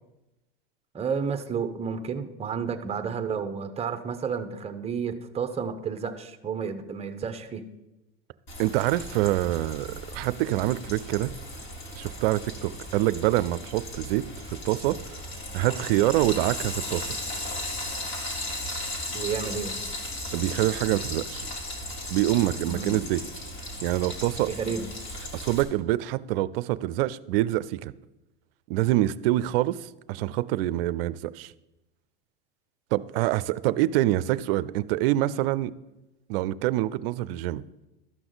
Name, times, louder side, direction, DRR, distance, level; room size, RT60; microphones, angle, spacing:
voice 1, 0.9-7.6 19.1-19.9 22.7-23.1 24.4-24.9, right 6 dB, 20° right, 0.8 m, -31 dB
Frying (food), 8.5-25.6, left 1 dB, 40° left, 2.6 m, -36 dB
voice 2, 8.6-11.3 11.9-15.0 15.5-17.1 20.3-21.5 22.1-23.2 23.8-24.5 25.3-27.9 28.7-31.5 32.9-35.7 36.3-37.6, right 15 dB, 70° right, 0.5 m, -26 dB
12.5 x 6.0 x 3.9 m
hypercardioid pair, 100°, 30 cm